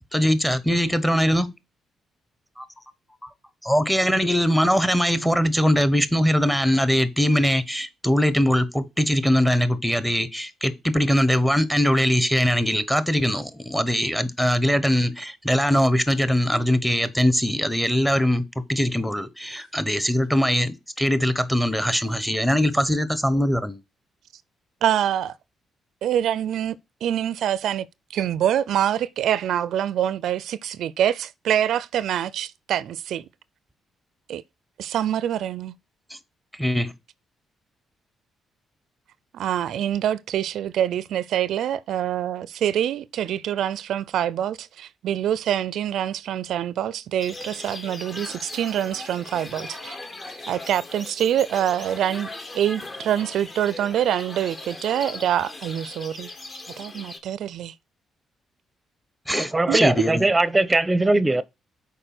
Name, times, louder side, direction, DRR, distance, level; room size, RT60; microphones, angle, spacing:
voice 1, 0.1-1.5 3.6-23.8 36.1-36.2 36.6-36.9 59.3-60.3, equal, 5° left, 1.1 m, -21 dB
voice 2, 24.8-25.3 26.0-26.8 27.0-33.2 34.3-34.4 34.8-35.7 39.3-50.0 50.5-52.3 52.5-56.3 56.8-57.7 59.7-59.8, right 10 dB, 80° right, 0.4 m, -25 dB
sound 1, 47.2-57.2, left 2 dB, 30° left, 1.5 m, -39 dB
voice 3, 59.4-61.4, right 2 dB, 15° right, 0.7 m, -20 dB
6.6 x 4.7 x 6.0 m
cardioid pair, 100°, 0 cm